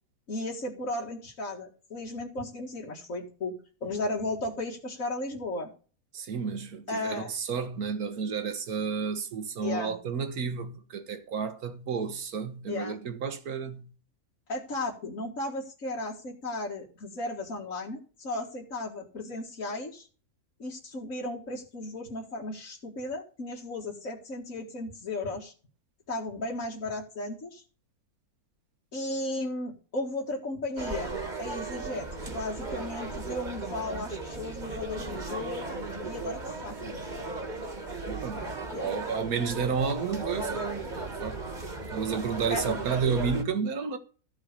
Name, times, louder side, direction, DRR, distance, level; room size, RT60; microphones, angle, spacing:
voice 1, 0.3-3.5 3.8-5.7 6.9-7.3 9.6-10.0 12.7-13.0 14.5-20.1 20.6-25.5 26.1-27.6 28.9-31.1 31.4-35.7 36.0-36.9 38.7-38.9 42.5-42.8, left 2 dB, 60° left, 2.2 m, -35 dB
voice 2, 6.1-13.9 38.1-40.7 40.9-41.4 41.9-44.0, right 6 dB, 75° right, 1.8 m, -31 dB
sound 1, 30.8-43.4, right 3 dB, 30° right, 1.8 m, -36 dB
14.5 x 4.9 x 6.6 m
omnidirectional pair, 1.6 m